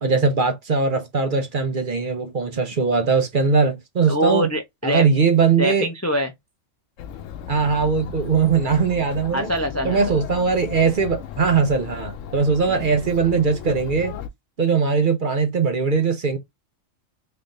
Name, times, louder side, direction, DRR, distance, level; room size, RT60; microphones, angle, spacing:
voice 1, 0.0-4.5 4.8-5.9 7.5-9.5 9.8-14.1 14.6-16.4, right 5 dB, 50° right, 0.7 m, -20 dB
voice 2, 4.1-5.1 5.6-6.3 9.3-10.2 12.7-12.8, equal, 25° left, 0.3 m, -24 dB
Chatter, 7.0-14.3, left 9 dB, 75° left, 1.0 m, -35 dB
3.8 x 3.3 x 2.5 m
omnidirectional pair, 1.4 m